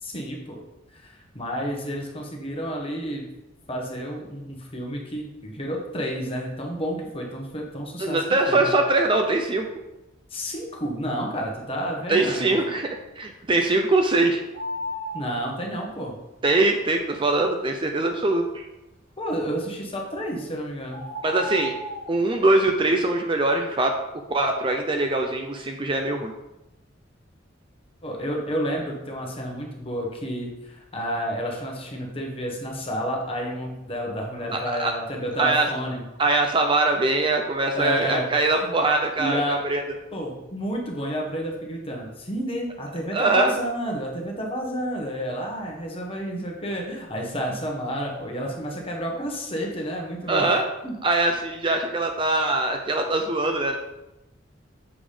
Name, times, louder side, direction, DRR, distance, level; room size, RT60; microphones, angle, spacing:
voice 1, 0.0-0.6 0.9-3.3 3.7-8.2 8.5-8.7 10.3-12.6 15.1-16.1 19.2-21.1 28.0-36.0 37.7-38.8 39.2-39.6 40.1-50.5 50.8-50.9, equal, 30° left, -1 dB, 1.2 m, -30 dB
voice 2, 8.0-9.7 12.1-12.9 13.2-14.4 16.4-18.7 21.2-21.7 22.1-24.0 24.3-26.3 34.5-34.9 35.4-35.7 36.2-39.8 43.1-43.5 50.3-50.6 51.0-53.8, right 2 dB, 25° right, 4 dB, 0.5 m, -22 dB
sound 1, 14.5-15.5 20.0-20.2 20.9-22.2, equal, 80° right, 2.0 m, -33 dB
7.1 x 3.6 x 5.0 m, 0.95 s
head